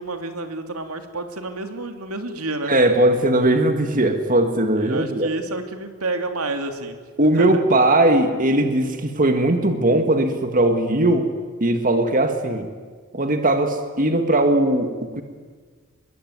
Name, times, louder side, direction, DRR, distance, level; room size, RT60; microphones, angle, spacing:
voice 1, 0.0-2.8 4.8-7.0 7.3-7.6, right 2 dB, 85° right, 6 dB, 3.0 m, -29 dB
voice 2, 2.7-5.3 7.2-11.3 11.6-12.7 13.1-15.2, right 1 dB, 40° right, 6 dB, 1.9 m, -19 dB
26.0 x 22.5 x 9.6 m, 1.5 s
head